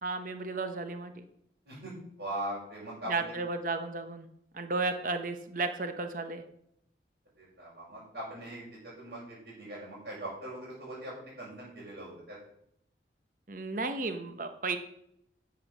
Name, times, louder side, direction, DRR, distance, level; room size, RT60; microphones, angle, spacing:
voice 1, 0.0-1.2 3.1-4.3 4.5-6.4 13.5-14.8, right 3 dB, 45° right, 8 dB, 0.9 m, -33 dB
voice 2, 2.2-3.3 7.4-12.4, right 1 dB, 65° right, -9 dB, 5.4 m, -41 dB
10.5 x 7.3 x 6.1 m, 0.73 s
head